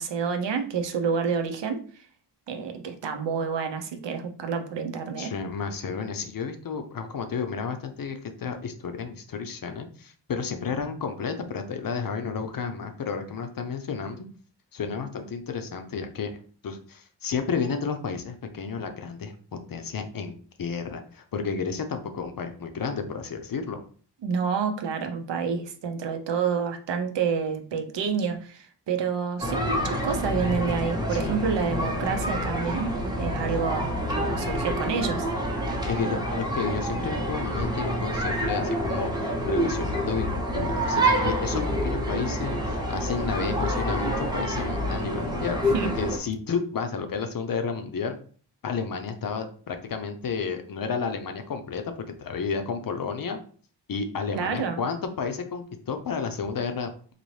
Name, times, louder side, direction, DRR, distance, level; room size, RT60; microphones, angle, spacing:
voice 1, 0.0-2.0 2.5-5.3 24.2-32.9 33.2-35.3 45.6-45.9 54.3-54.8, right 6 dB, 80° right, 6 dB, 0.7 m, -28 dB
voice 2, 5.2-14.3 14.7-16.3 16.6-19.3 19.7-23.8 31.1-31.4 35.9-45.6 46.0-48.2 48.6-51.9 52.2-53.4 53.9-57.1, left 5 dB, 55° left, 7 dB, 0.6 m, -31 dB
sound 1, 29.4-46.2, equal, 10° right, 0.7 m, -27 dB
4.0 x 2.6 x 3.2 m, 0.43 s
wide cardioid pair, 145°, 42 cm